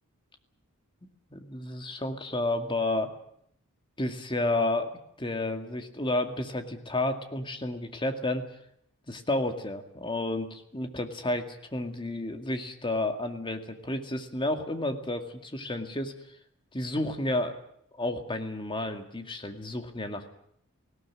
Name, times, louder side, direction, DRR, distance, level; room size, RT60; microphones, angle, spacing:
voice 1, 1.3-3.1 4.0-4.9 5.2-8.5 9.1-16.1 16.7-17.6 17.9-20.4, left 2 dB, 20° left, 6 dB, 2.1 m, -31 dB
19.0 x 17.5 x 9.8 m, 0.70 s
head